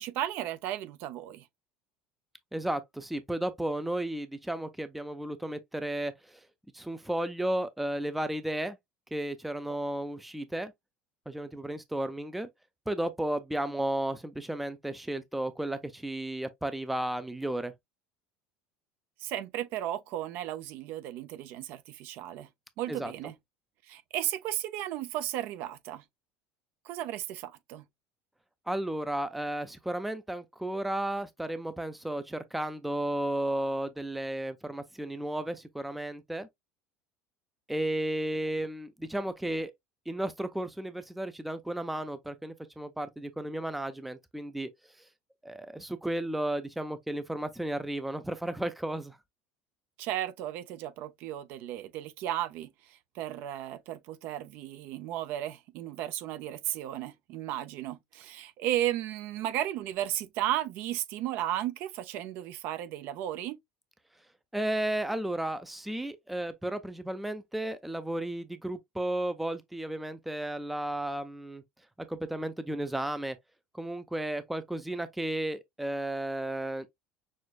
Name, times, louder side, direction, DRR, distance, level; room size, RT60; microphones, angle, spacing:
voice 1, 0.0-1.5 19.2-22.5 22.8-23.3 23.9-26.0 26.8-27.8 50.0-63.6, right 12 dB, 60° right, 0.6 m, -34 dB
voice 2, 2.5-6.4 6.7-8.8 9.1-10.7 11.3-12.5 12.9-17.7 22.9-23.1 28.7-36.5 37.7-39.7 40.1-44.7 45.4-49.2 64.5-71.6 72.1-73.4 73.7-76.9, right 1 dB, 5° right, 0.5 m, -33 dB
6.3 x 2.4 x 2.4 m
cardioid pair, 140°, 4 cm